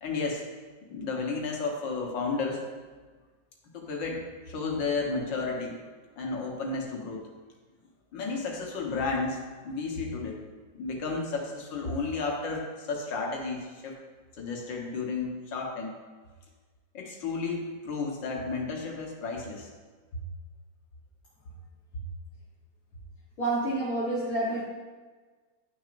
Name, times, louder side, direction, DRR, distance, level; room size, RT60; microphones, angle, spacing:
voice 1, 0.0-0.4 0.9-2.6 3.7-4.2 4.5-5.8 6.2-7.2 8.1-9.4 9.6-10.4 10.7-13.9 14.4-15.9 16.9-19.7, left 4 dB, 75° left, 0 dB, 1.9 m, -32 dB
voice 2, 23.4-24.6, right 2 dB, 50° left, -8 dB, 1.7 m, -28 dB
11.0 x 6.0 x 2.5 m, 1.4 s
omnidirectional pair, 2.0 m